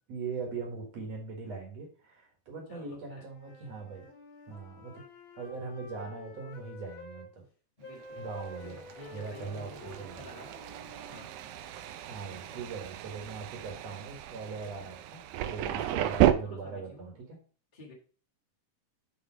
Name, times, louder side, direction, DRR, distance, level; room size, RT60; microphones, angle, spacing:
voice 1, 0.0-4.1 4.5-5.0 5.3-7.4 8.2-10.3 12.1-17.4, right 4 dB, 60° right, 2 dB, 2.6 m, -41 dB
voice 2, 2.7-3.2 7.8-8.3 8.6-10.5 11.1-11.4 12.5-12.7 15.7-17.1 17.7-17.9, left 1 dB, 25° left, -4 dB, 1.1 m, -50 dB
sound 1, 3.2-7.3 7.8-12.0, left 3 dB, 50° left, 1.8 m, -49 dB
Thunder, 8.2-16.3, right 13 dB, 80° right, 1.9 m, -33 dB
6.2 x 5.0 x 4.5 m, 0.39 s
omnidirectional pair, 3.7 m